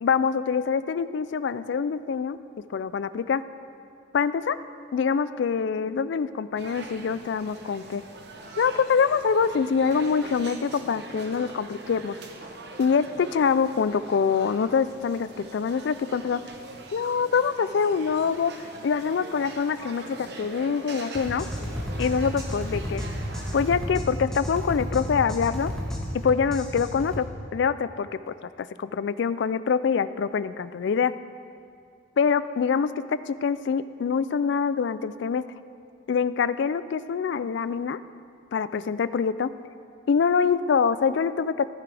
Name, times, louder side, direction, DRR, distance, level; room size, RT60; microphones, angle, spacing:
voice 1, 0.0-2.4 2.7-3.4 4.1-4.6 4.9-8.0 8.6-12.2 12.8-16.4 16.9-18.5 18.8-21.5 22.0-23.0 23.5-25.7 26.2-27.3 27.5-31.1 32.2-35.4 36.1-38.0 38.5-39.5 40.1-41.7, left 6 dB, 70° left, 15 dB, 0.3 m, -25 dB
sound 1, 6.6-23.7, right 2 dB, 60° right, 0.9 m, -43 dB
sound 2, 21.1-27.2, equal, 5° left, 1.3 m, -32 dB
15.0 x 9.7 x 3.4 m, 2.3 s
head